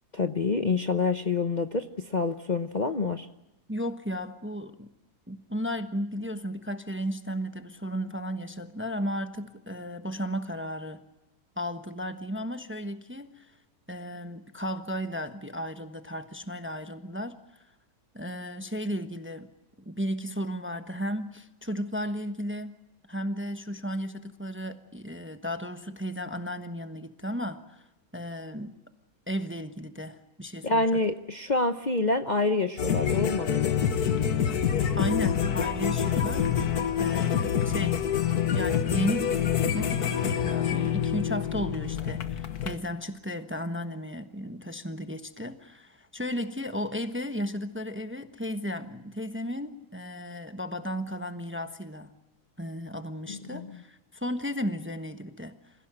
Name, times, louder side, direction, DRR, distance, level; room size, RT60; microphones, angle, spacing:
voice 1, 0.1-3.3 30.6-33.8 53.3-53.7, left 3 dB, 35° left, 6 dB, 0.9 m, -27 dB
voice 2, 3.7-4.9 5.3-11.0 11.6-13.6 13.9-17.4 18.1-19.5 19.9-22.8 23.1-27.8 28.1-28.7 29.3-31.0 35.0-36.7 37.0-38.0 38.5-52.1 52.6-55.7, equal, 10° right, 8 dB, 1.0 m, -34 dB
sound 1, 32.8-42.8, left 8 dB, 75° left, 1.7 m, -26 dB
27.5 x 16.5 x 8.9 m, 0.94 s
omnidirectional pair, 1.7 m